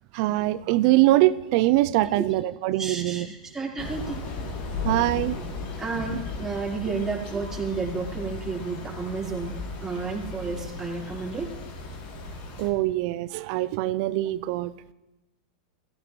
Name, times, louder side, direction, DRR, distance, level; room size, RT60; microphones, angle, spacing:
voice 1, 0.1-3.3 4.8-5.4 12.6-14.9, right 16 dB, 50° right, 15 dB, 0.4 m, -23 dB
voice 2, 2.8-4.2 5.8-11.5, right 4 dB, 10° right, -5 dB, 4.3 m, -31 dB
Thunder / Rain, 3.8-12.7, left 3 dB, 50° left, 3.0 m, -36 dB
17.0 x 15.5 x 3.2 m, 1.1 s
hypercardioid pair, 120°, 4 cm